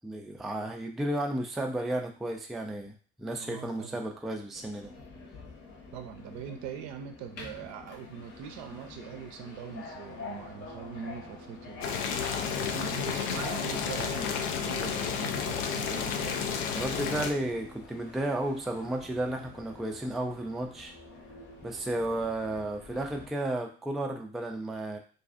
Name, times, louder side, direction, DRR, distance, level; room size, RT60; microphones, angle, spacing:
voice 1, 0.0-4.9 16.7-20.9 21.6-25.0, right 1 dB, ahead, 3 dB, 0.3 m, -33 dB
voice 2, 3.4-4.0 5.9-11.9 12.4-16.5, right 8 dB, 60° right, 5 dB, 0.5 m, -42 dB
Subway metro underground, 4.5-23.3, left 3 dB, 50° left, 1.0 m, -47 dB
Boiling, 11.8-17.3, left 6 dB, 70° left, 0.5 m, -31 dB
2.5 x 2.3 x 2.4 m, 0.39 s
hypercardioid pair, 55°, 32 cm